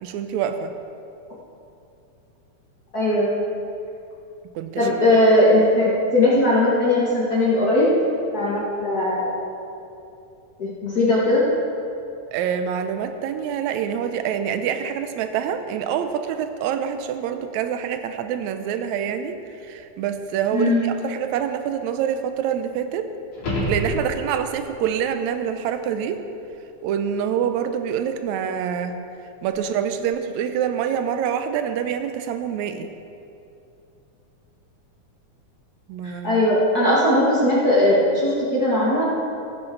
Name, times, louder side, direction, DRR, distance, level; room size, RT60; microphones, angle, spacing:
voice 1, 0.0-0.7 4.6-4.9 12.3-19.3 19.6-23.1 23.7-26.2 26.8-29.0 29.4-32.9 35.9-36.4, right 8 dB, 80° right, 8 dB, 1.9 m, -26 dB
voice 2, 2.9-3.3 4.8-7.9 8.3-9.3 10.6-11.5 20.5-20.9 36.0-39.0, left 1 dB, 35° left, -7 dB, 2.0 m, -19 dB
sound 1, 23.3-24.6 29.4-29.5, equal, 55° left, 3.8 m, -27 dB
16.5 x 9.5 x 3.9 m, 2.7 s
omnidirectional pair, 3.4 m